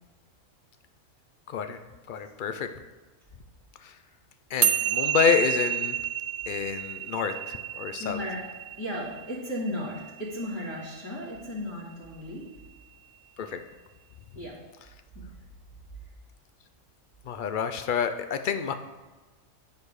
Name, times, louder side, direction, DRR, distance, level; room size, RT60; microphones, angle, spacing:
voice 1, 1.5-1.8 2.1-2.7 3.8-3.9 4.5-6.0 6.5-8.2 13.4-13.6 17.3-18.7, left 7 dB, 60° left, 8 dB, 0.5 m, -28 dB
sound 1, 4.6-11.2, right 10 dB, 90° right, 1.0 m, -30 dB
voice 2, 8.0-8.4 8.8-12.5 14.3-14.6, left 1 dB, 20° left, -9 dB, 2.4 m, -35 dB
10.5 x 4.7 x 4.8 m, 1.2 s
omnidirectional pair, 1.4 m